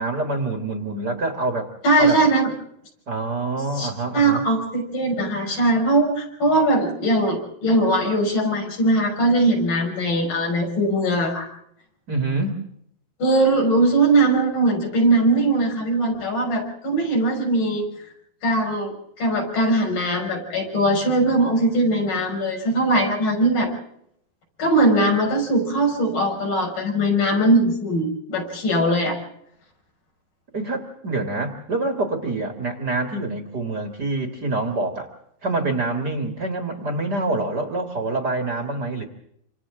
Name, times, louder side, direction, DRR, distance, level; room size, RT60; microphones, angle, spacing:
voice 1, 0.0-1.7 2.0-2.2 3.1-4.4 12.1-12.6 30.5-35.1 35.4-39.0, right 2 dB, 40° right, 4 dB, 1.5 m, -26 dB
voice 2, 1.8-2.5 3.8-11.5 13.2-17.9 18.4-23.7 24.6-29.2, right 1 dB, 55° left, 1 dB, 6.9 m, -20 dB
27.5 x 27.0 x 3.7 m, 0.71 s
omnidirectional pair, 4.7 m